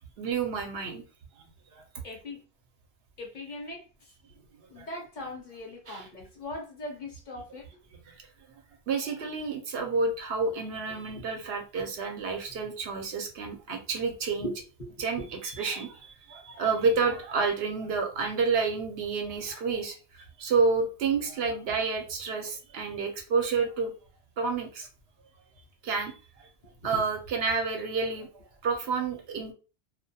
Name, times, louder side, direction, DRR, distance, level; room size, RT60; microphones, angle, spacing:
voice 1, 0.2-1.0 4.8-4.9 5.9-6.1 8.1-8.2 8.9-14.5 15.0-23.9 24.4-24.9 25.8-26.5 26.8-28.3 28.6-29.5, right 4 dB, 75° right, 0.8 m, -29 dB
voice 2, 2.0-2.4 3.2-3.8 4.7-7.6 11.1-11.3 14.4-14.9 15.2-15.3 26.9-27.0, left 1 dB, 50° left, 0.8 m, -39 dB
2.2 x 2.2 x 2.7 m
omnidirectional pair, 1.1 m